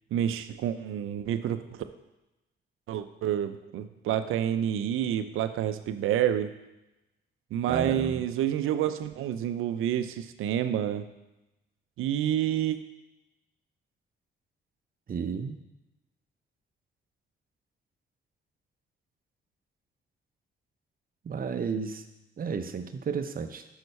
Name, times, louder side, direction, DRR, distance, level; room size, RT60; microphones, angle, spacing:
voice 1, 0.1-1.8 2.9-6.5 7.5-11.1 12.0-12.8, right 10 dB, 80° right, 11 dB, 0.5 m, -28 dB
voice 2, 7.7-8.3 15.1-15.6 21.2-22.0 22.4-23.6, right 6 dB, 45° right, 8 dB, 0.7 m, -32 dB
6.2 x 5.6 x 5.4 m, 0.97 s
supercardioid pair, 65°, 21 cm